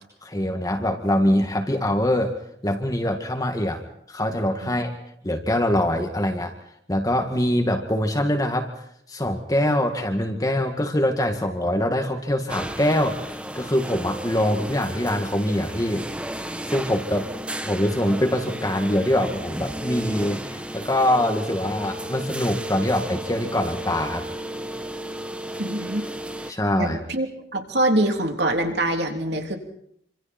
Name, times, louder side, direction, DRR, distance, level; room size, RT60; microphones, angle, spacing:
voice 1, 0.2-2.3 2.6-3.8 4.1-4.9 5.2-6.5 6.9-8.7 9.1-13.2 13.5-16.1 16.7-17.3 17.6-24.2 26.5-27.0, left 1 dB, 20° left, 3 dB, 2.1 m, -23 dB
sound 1, 12.5-26.5, right 1 dB, 5° right, 1.0 m, -33 dB
voice 2, 25.6-26.0 26.8-27.3 27.5-29.6, right 1 dB, 65° right, 3 dB, 3.3 m, -24 dB
27.5 x 26.0 x 4.4 m, 0.70 s
head